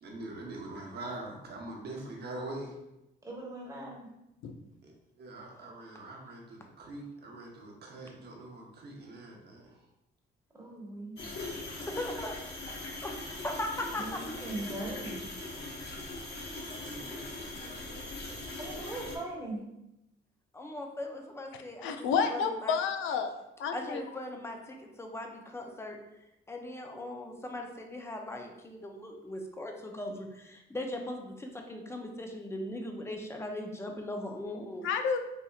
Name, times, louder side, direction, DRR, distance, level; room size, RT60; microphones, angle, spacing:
voice 1, 0.0-2.8 4.8-9.8 16.6-19.2, right 2 dB, 55° right, 0 dB, 0.9 m, -44 dB
voice 2, 3.2-4.1 10.5-11.2 14.0-15.3 18.6-19.6, right 2 dB, 15° right, -4 dB, 1.1 m, -40 dB
sound 1, 11.2-19.2, left 2 dB, 60° left, 1.0 m, -41 dB
voice 3, 11.6-12.3 13.0-14.2 20.5-22.8 23.7-26.0 26.5-34.9, left 1 dB, 15° left, 2 dB, 0.5 m, -39 dB
voice 4, 21.8-23.3 23.6-24.0 34.8-35.2, left 6 dB, 85° left, 7 dB, 0.4 m, -30 dB
4.2 x 2.7 x 2.4 m, 0.89 s
cardioid pair, 90°, 20 cm